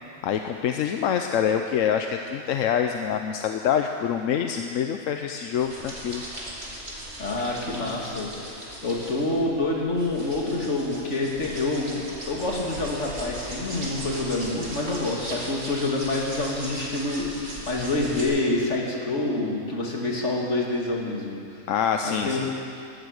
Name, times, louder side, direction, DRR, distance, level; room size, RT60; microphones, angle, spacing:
voice 1, 0.2-6.2 21.7-22.5, left 8 dB, 85° left, 5 dB, 1.0 m, -25 dB
sound 1, 5.5-18.2, right 1 dB, 55° right, 2.9 m, -38 dB
voice 2, 7.2-8.3 8.8-21.6 22.0-22.4, left 2 dB, 65° left, -2 dB, 2.5 m, -27 dB
16.0 x 12.5 x 6.4 m, 2.6 s
omnidirectional pair, 1.3 m